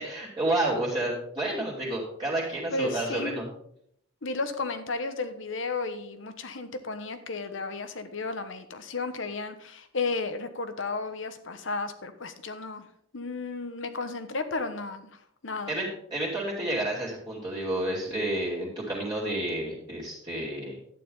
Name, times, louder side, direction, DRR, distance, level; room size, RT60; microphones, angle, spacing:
voice 1, 0.0-3.5 15.7-20.7, right 1 dB, 20° right, -7 dB, 2.6 m, -30 dB
voice 2, 2.7-3.3 4.2-12.8 13.1-15.7, left 3 dB, 65° left, 9 dB, 1.1 m, -33 dB
11.5 x 9.4 x 4.0 m, 0.70 s
head